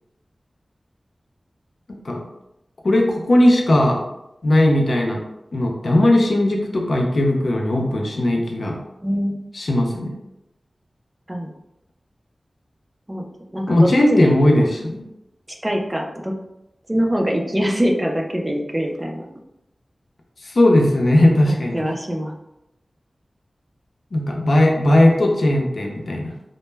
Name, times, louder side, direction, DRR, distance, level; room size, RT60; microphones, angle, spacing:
voice 1, 1.9-2.2 2.8-4.0 4.4-5.2 5.5-8.8 9.5-10.1 13.7-15.0 20.4-21.9 24.1-26.3, left 1 dB, 70° left, 0 dB, 0.4 m, -17 dB
voice 2, 9.0-9.4 11.3-11.5 13.1-13.2 13.5-14.7 15.6-16.3 16.9-19.3 21.5-22.3, equal, 20° right, 1 dB, 0.3 m, -23 dB
2.1 x 2.0 x 3.2 m, 0.89 s
wide cardioid pair, 75°, 0 cm